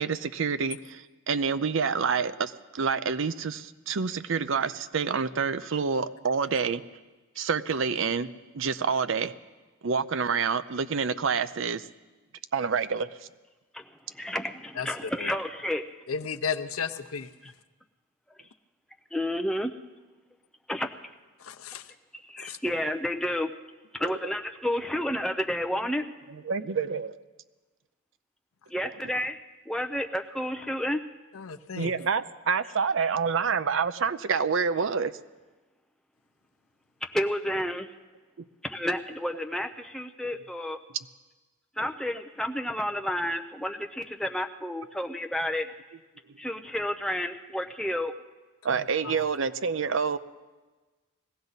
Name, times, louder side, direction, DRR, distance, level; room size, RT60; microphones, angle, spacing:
voice 1, 0.0-6.8 7.4-9.3 9.8-11.9 12.5-13.1 24.0-24.1 26.5-27.2 31.8-35.1 48.6-50.2, right 5 dB, 65° right, 13 dB, 0.5 m, -27 dB
voice 2, 13.7-15.8 17.4-17.5 19.1-19.7 20.7-21.0 22.2-23.5 23.9-26.0 28.7-29.4 29.7-31.0 37.1-37.9 38.6-40.8 41.8-45.7 46.4-48.1, left 1 dB, ahead, 5 dB, 0.6 m, -30 dB
voice 3, 14.8-15.3 16.1-17.3 21.4-21.9 22.4-22.6 31.3-31.9 48.7-48.8 49.2-49.3, left 6 dB, 85° left, 9 dB, 0.7 m, -34 dB
20.5 x 16.0 x 4.1 m, 1.2 s
head